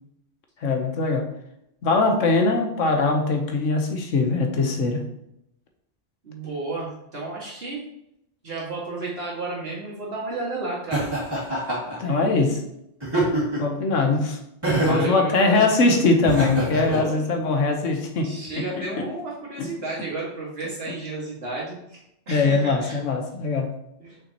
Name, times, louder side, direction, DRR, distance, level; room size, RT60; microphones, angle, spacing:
voice 1, 0.6-1.3 1.8-5.0 12.0-12.6 13.6-14.4 14.8-18.6 22.3-23.7, left 3 dB, 85° left, 4 dB, 1.3 m, -21 dB
voice 2, 6.2-7.8 8.4-11.1 11.9-12.5 14.7-15.7 16.8-17.2 18.2-23.0 24.0-24.2, right 2 dB, 55° right, -5 dB, 2.1 m, -33 dB
Laughter, 10.9-12.0 13.0-13.7 14.6-15.1 16.2-17.0, right 1 dB, 20° right, 2.2 m, -24 dB
6.1 x 5.7 x 2.9 m, 0.81 s
omnidirectional pair, 1.3 m